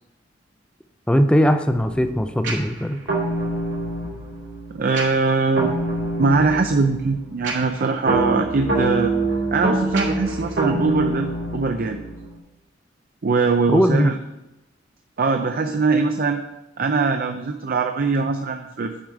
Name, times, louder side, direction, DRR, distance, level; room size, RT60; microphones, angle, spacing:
voice 1, 1.1-3.0 13.7-14.1, equal, 5° left, 8 dB, 0.4 m, -19 dB
sound 1, 1.8-12.4, right 2 dB, 70° right, 2.5 m, -26 dB
voice 2, 4.7-5.7 6.2-9.1 9.5-11.3 11.5-12.1 13.2-14.2 15.2-16.4 16.8-18.9, right 4 dB, 50° right, 6 dB, 0.5 m, -21 dB
7.3 x 5.0 x 7.2 m, 0.96 s
head